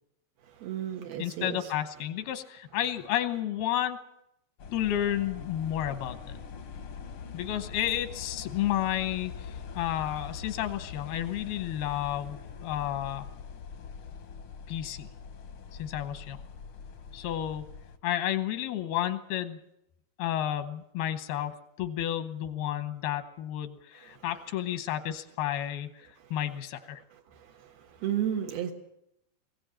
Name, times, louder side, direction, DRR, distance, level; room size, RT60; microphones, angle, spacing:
voice 1, 0.6-1.6 27.4-28.7, right 10 dB, 80° right, 2 dB, 3.4 m, -33 dB
voice 2, 1.2-4.0 4.7-6.2 7.3-13.3 14.7-15.1 15.8-16.4 17.1-17.7 18.0-19.6 20.2-25.9 26.3-27.0, left 11 dB, 85° left, 9 dB, 3.0 m, -31 dB
sound 1, 4.6-18.0, left 6 dB, 70° left, 1.3 m, -43 dB
22.0 x 16.5 x 8.9 m, 0.82 s
omnidirectional pair, 4.4 m